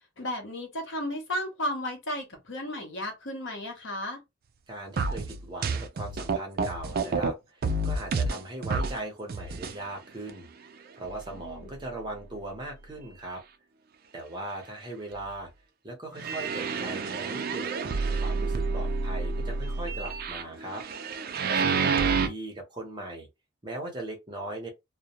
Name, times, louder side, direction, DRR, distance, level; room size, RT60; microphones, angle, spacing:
voice 1, 0.2-4.2 11.3-11.7 21.6-22.1, left 1 dB, 70° left, 0.9 m, -34 dB
voice 2, 4.7-10.5 11.0-13.4 14.1-15.5 15.8-17.7 18.2-20.8 21.5-23.3 23.6-24.7, right 1 dB, 25° right, 0.8 m, -39 dB
sound 1, 5.0-7.3 7.6-9.0 9.3-9.8 10.3-10.4 11.0-11.1 11.7-11.8 16.1-22.3, right 4 dB, 50° right, 0.4 m, -29 dB
2.2 x 2.1 x 2.8 m
head